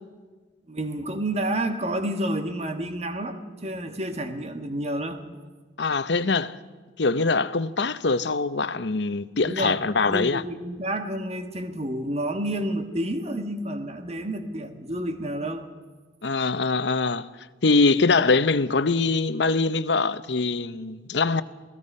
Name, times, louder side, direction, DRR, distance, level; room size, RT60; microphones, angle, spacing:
voice 1, 0.7-5.2 9.4-9.8 10.1-15.7, right 1 dB, 35° right, 1.5 m, -29 dB
voice 2, 5.8-6.6 7.0-10.4 16.2-17.3 17.6-21.4, left 3 dB, 70° left, 0.8 m, -23 dB
27.5 x 18.5 x 5.5 m
head